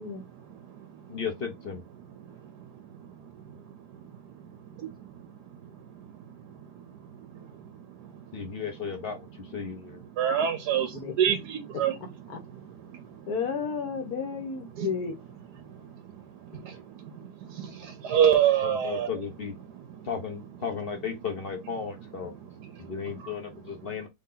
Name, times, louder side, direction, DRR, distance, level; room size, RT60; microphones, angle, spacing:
voice 1, 0.0-1.2 1.9-3.6 4.4-6.8 7.5-12.0 12.3-13.3 14.7-14.9 15.6-19.1 19.6-20.1 21.8-24.1, right 9 dB, 80° right, 1.2 m, -31 dB
voice 2, 1.1-1.8 8.3-9.2 9.5-10.0 18.8-19.5 20.1-22.3 22.9-24.1, left 6 dB, 45° left, 0.9 m, -34 dB
voice 3, 13.2-15.1, left 6 dB, 65° left, 1.5 m, -32 dB
3.3 x 2.7 x 3.7 m
omnidirectional pair, 1.7 m